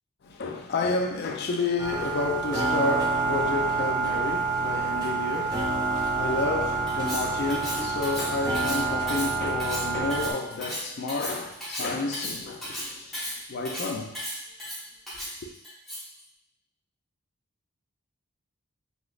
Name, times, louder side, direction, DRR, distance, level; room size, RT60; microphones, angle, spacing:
voice 1, 0.2-14.2, left 3 dB, 55° left, 0.4 m, -30 dB
sound 1, 1.8-10.3, right 4 dB, 20° right, 0.5 m, -28 dB
Cutlery silverware, 6.9-16.2, equal, ahead, 1.1 m, -35 dB
3.4 x 2.8 x 2.3 m
head